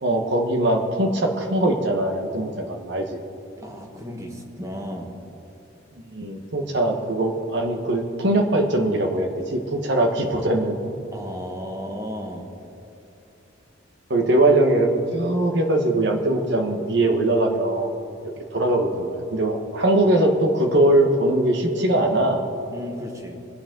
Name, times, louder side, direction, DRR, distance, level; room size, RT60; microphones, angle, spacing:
voice 1, 0.0-3.2 6.1-10.8 14.1-17.9 18.5-22.4, right 1 dB, 60° right, 3 dB, 1.3 m, -21 dB
voice 2, 3.6-5.2 11.1-12.7 22.7-23.5, equal, 15° right, 1 dB, 1.2 m, -34 dB
21.0 x 7.9 x 3.8 m, 2.8 s
head